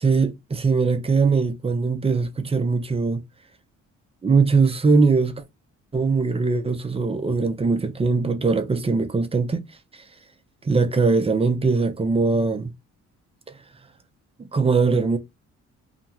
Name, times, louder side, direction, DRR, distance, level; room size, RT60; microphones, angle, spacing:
voice 1, 0.0-3.2 4.2-5.4 5.9-9.6 10.6-12.7 14.5-15.2, right 4 dB, 20° right, 0.5 m, -21 dB
2.8 x 2.1 x 2.7 m
cardioid pair, 90°, 30 cm